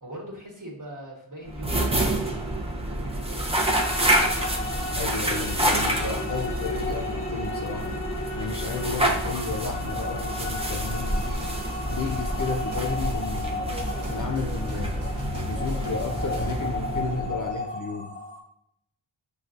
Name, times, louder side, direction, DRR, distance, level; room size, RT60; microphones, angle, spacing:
voice 1, 0.0-3.8, equal, 40° right, -2 dB, 1.3 m, -42 dB
sound 1, 1.5-17.6, right 1 dB, 15° right, 0.5 m, -28 dB
sound 2, 3.7-18.4, left 2 dB, 25° left, 1.1 m, -34 dB
voice 2, 4.9-8.0 8.3-11.5 11.9-13.8 14.1-15.2 15.5-18.2, left 4 dB, 45° left, 3 dB, 0.4 m, -33 dB
sound 3, 10.4-16.5, left 1 dB, 65° right, 1.1 m, -39 dB
6.3 x 2.2 x 2.5 m, 0.72 s
wide cardioid pair, 70°, 48 cm